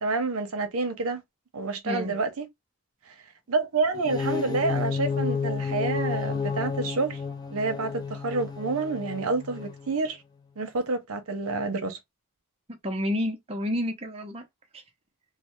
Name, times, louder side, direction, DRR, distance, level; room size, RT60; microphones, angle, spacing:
voice 1, 0.0-1.2 1.5-2.4 3.5-7.2 7.5-10.2 10.6-12.0, right 3 dB, 75° right, 0.7 m, -28 dB
voice 2, 1.8-2.1 12.8-14.4 14.7-14.8, left 1 dB, 25° right, 0.6 m, -30 dB
sound 1, 4.0-9.9, left 5 dB, 20° left, 0.4 m, -31 dB
3.1 x 2.0 x 3.0 m
head